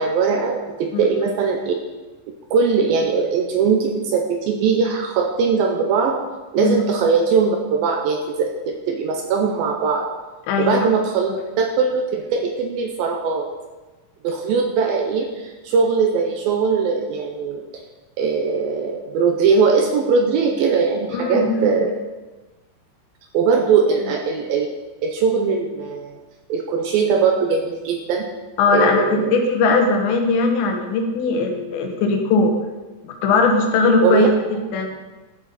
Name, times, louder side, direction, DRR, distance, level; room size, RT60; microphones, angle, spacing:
voice 1, 0.0-1.8 2.5-6.2 6.5-10.1 10.6-11.3 11.6-13.5 14.2-17.6 18.2-21.9 23.3-24.7 25.0-26.2 26.5-28.3 28.7-29.3 34.0-34.3, right 5 dB, 75° right, 3 dB, 2.3 m, -20 dB
voice 2, 10.5-10.9 11.3-11.4 21.1-21.7 28.6-29.1 29.3-32.5 33.0-34.3 34.7-35.0, left 4 dB, 90° left, 3 dB, 3.5 m, -19 dB
12.5 x 7.6 x 4.2 m, 1.2 s
omnidirectional pair, 4.9 m